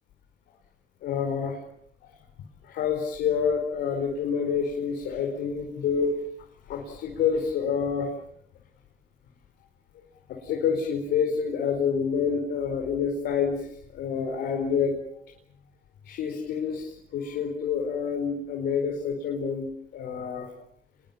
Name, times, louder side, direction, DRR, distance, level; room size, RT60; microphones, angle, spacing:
voice 1, 1.0-1.6 2.6-6.1 6.7-8.1 10.3-13.7 13.9-14.9 16.0-19.7 19.9-20.5, left 6 dB, 75° left, 2 dB, 4.7 m, -27 dB
29.0 x 22.0 x 7.3 m, 0.70 s
cardioid pair, 110°, 17 cm